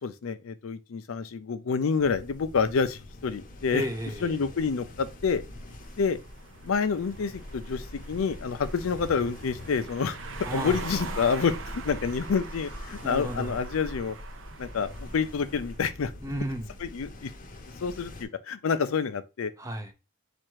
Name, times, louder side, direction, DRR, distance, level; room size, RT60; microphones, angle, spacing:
voice 1, 0.0-3.8 4.2-5.4 6.0-6.2 6.6-10.2 10.5-14.2 14.6-16.1 16.8-17.3 17.8-19.5, left 5 dB, 85° left, 0.5 m, -28 dB
sound 1, 2.0-18.2, left 1 dB, 40° left, 0.8 m, -43 dB
voice 2, 3.7-4.4 10.4-10.8 13.0-13.6 16.2-16.7 19.6-19.9, right 1 dB, 15° right, 0.6 m, -33 dB
sound 2, 5.5-15.8, right 5 dB, 65° right, 0.6 m, -44 dB
4.3 x 2.5 x 4.6 m
head